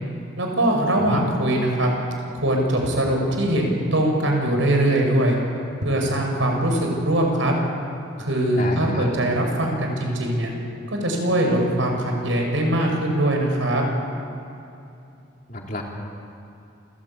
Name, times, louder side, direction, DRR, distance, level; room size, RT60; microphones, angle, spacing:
voice 1, 0.4-1.9 2.3-5.4 5.8-7.5 8.2-10.5 10.9-13.8, right 1 dB, 85° right, 1 dB, 6.1 m, -22 dB
voice 2, 8.6-9.1 15.5-15.8, left 1 dB, 40° left, 0 dB, 3.4 m, -29 dB
29.0 x 17.0 x 8.8 m, 2.7 s
head